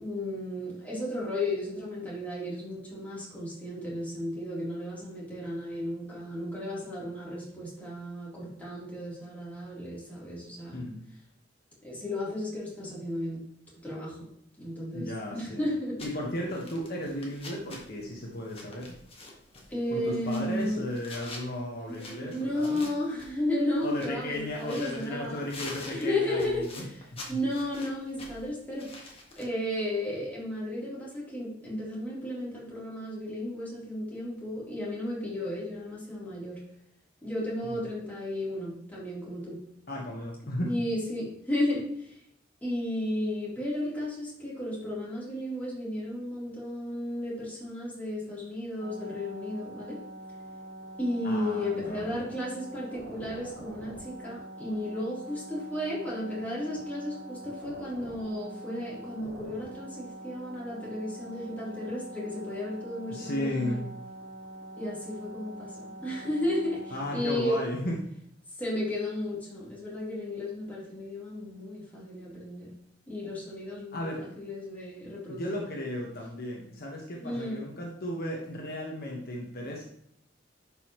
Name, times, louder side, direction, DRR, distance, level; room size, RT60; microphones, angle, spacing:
voice 1, 0.0-10.9 11.8-13.5 13.8-14.3 14.6-16.0 19.7-20.8 21.9-25.5 25.9-27.0 27.3-28.9 29.4-36.6 37.2-39.6 40.6-42.2 42.6-50.0 51.0-63.8 64.8-67.6 68.6-72.7 73.1-75.6 77.2-77.7, left 1 dB, 10° left, -7 dB, 3.5 m, -34 dB
voice 2, 10.7-11.0 14.9-15.6 16.0-18.9 19.9-22.9 23.8-26.8 27.1-27.4 37.6-37.8 39.9-40.7 51.2-52.1 63.1-63.9 66.9-68.0 73.9-74.3 75.3-79.9, left 1 dB, 55° left, -1 dB, 1.4 m, -35 dB
sound 1, 16.0-29.5, left 2 dB, 30° left, 1.7 m, -47 dB
sound 2, 48.8-67.4, right 1 dB, 75° right, 1.2 m, -44 dB
10.5 x 5.5 x 3.1 m, 0.70 s
head